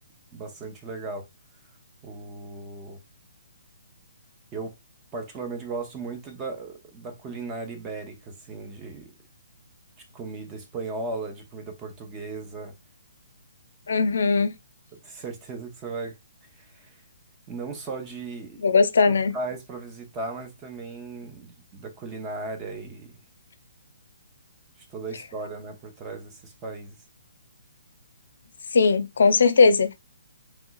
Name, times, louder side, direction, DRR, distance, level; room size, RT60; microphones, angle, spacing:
voice 1, 0.3-1.3 2.0-3.0 4.5-4.7 5.1-9.1 10.1-12.7 14.9-16.1 16.6-17.0 17.5-18.6 19.1-23.2 24.8-27.0, right 3 dB, 20° right, 0.7 m, -36 dB
voice 2, 13.9-14.5 18.6-19.4 28.7-29.9, left 4 dB, 65° left, 0.4 m, -19 dB
3.1 x 2.8 x 2.3 m
figure-of-eight pair, 135°, 0 cm